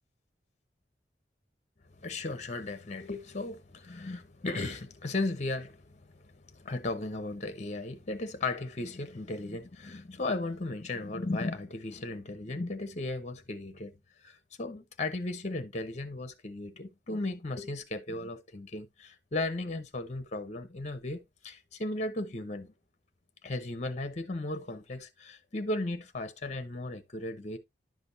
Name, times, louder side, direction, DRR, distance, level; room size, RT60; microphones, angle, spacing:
voice 1, 2.0-13.9 14.2-22.7 23.4-27.6, left 2 dB, 40° left, 0.9 m, -36 dB
10.5 x 5.1 x 2.6 m
head